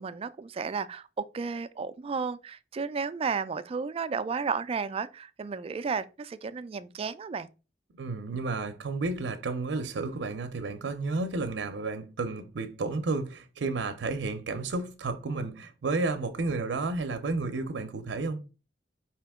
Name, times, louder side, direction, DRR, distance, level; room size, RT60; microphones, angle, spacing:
voice 1, 0.0-7.5, right 5 dB, 35° right, 0.3 m, -33 dB
voice 2, 7.9-18.4, right 3 dB, 85° right, 0.5 m, -32 dB
5.0 x 2.8 x 3.5 m
head